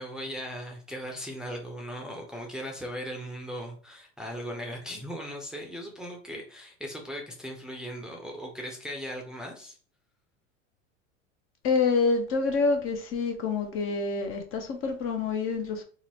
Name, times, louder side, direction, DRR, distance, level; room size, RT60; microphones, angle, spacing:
voice 1, 0.0-9.8, equal, ahead, 0.6 m, -38 dB
voice 2, 11.6-15.8, left 4 dB, 35° left, 0.7 m, -27 dB
3.7 x 2.0 x 3.0 m
hypercardioid pair, 95°, 37 cm